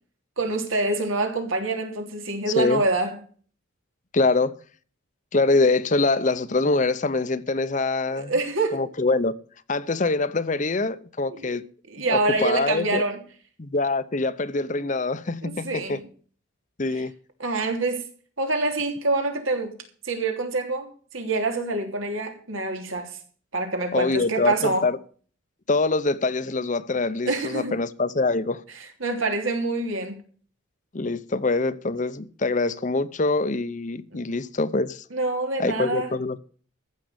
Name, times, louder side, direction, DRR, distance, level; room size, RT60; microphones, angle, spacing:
voice 1, 0.4-3.1 8.1-8.9 11.3-11.6 11.9-13.2 14.8-14.9 15.4-16.0 16.9-17.0 17.4-18.0 18.4-19.8 20.0-23.2 23.5-24.9 27.2-27.7 29.0-30.2 34.1-34.2 35.1-36.1, right 3 dB, 85° right, 3.3 m, -26 dB
voice 2, 4.1-4.5 5.3-8.3 8.7-9.3 9.7-11.6 12.0-13.0 13.6-16.0 16.8-17.1 23.9-25.0 25.7-28.6 30.9-35.0 35.6-36.4, left 3 dB, 40° left, 0.7 m, -24 dB
15.0 x 6.5 x 8.0 m
head